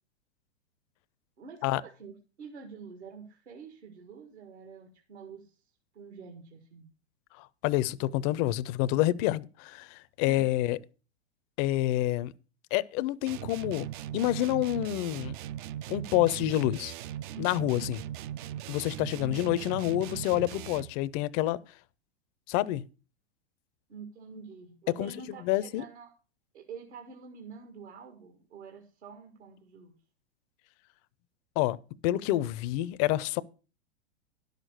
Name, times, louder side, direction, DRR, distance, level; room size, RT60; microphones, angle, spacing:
voice 1, 1.4-5.6 5.9-6.9 10.2-10.5 19.2-19.4 23.9-26.1 26.5-30.0, right 5 dB, 75° right, 1.9 m, -47 dB
voice 2, 7.4-10.8 11.6-12.3 12.7-13.9 14.1-15.4 15.9-16.9 17.4-18.0 18.7-21.6 22.5-22.8 25.0-25.1 25.4-25.8 31.6-31.8 32.0-33.4, left 15 dB, 35° left, 0.5 m, -28 dB
sound 1, 13.3-21.0, right 12 dB, 50° right, 0.4 m, -39 dB
11.0 x 6.6 x 6.3 m
hypercardioid pair, 110°, 34 cm